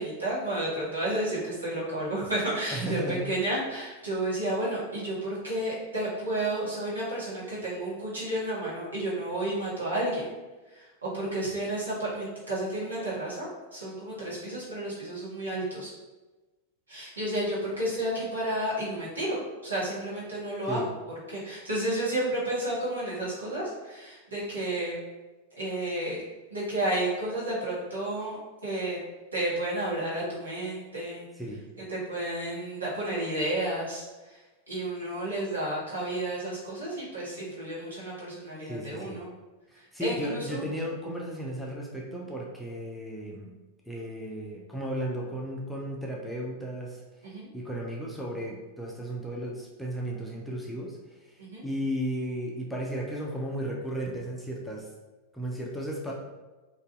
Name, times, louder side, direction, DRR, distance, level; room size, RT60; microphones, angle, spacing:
voice 1, 0.0-10.3 10.7-15.9 16.9-19.4 19.6-20.9 21.3-25.0 25.5-26.2 26.5-28.4 28.6-29.0 29.3-31.2 31.9-34.0 34.3-34.4 34.7-39.3 40.0-40.7 47.2-47.5 51.4-51.6, right 1 dB, 75° right, -7 dB, 0.9 m, -31 dB
voice 2, 2.7-3.2 20.7-20.8 31.4-31.6 38.6-39.2 39.9-43.5 43.9-47.0 47.5-51.3 51.6-54.9 55.3-56.1, equal, ahead, -3 dB, 0.4 m, -34 dB
2.5 x 2.3 x 2.2 m, 1.2 s
figure-of-eight pair, 90°, 0 cm